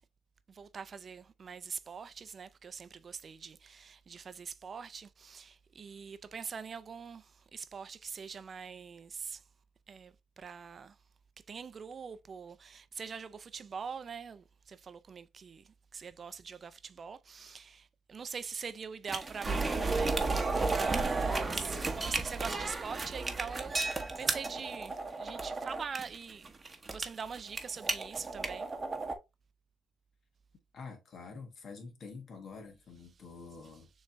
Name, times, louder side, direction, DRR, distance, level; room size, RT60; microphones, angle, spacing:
voice 1, 0.5-9.4 9.9-11.0 11.5-26.5 26.9-28.7, right 6 dB, 45° right, 0.4 m, -43 dB
sound 1, 19.1-29.2, right 3 dB, 25° right, 0.9 m, -33 dB
voice 2, 30.7-33.9, left 4 dB, 60° left, 1.4 m, -47 dB
6.5 x 3.2 x 2.6 m
cardioid pair, 90°, 0 cm